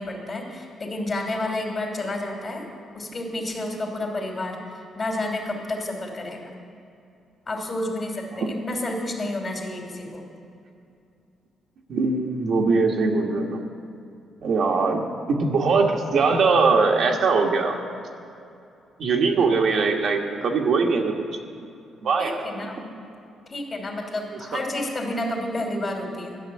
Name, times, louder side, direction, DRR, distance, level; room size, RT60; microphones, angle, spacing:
voice 1, 0.0-2.7 2.9-6.5 7.5-10.2 22.2-22.9 23.5-26.4, left 1 dB, 35° left, 1 dB, 2.8 m, -30 dB
voice 2, 11.9-13.7 14.4-15.0 15.3-17.8 19.0-21.1 22.0-22.4, right 4 dB, 60° right, 1 dB, 1.3 m, -21 dB
12.0 x 6.6 x 9.5 m, 2.6 s
cardioid pair, 90°, 0 cm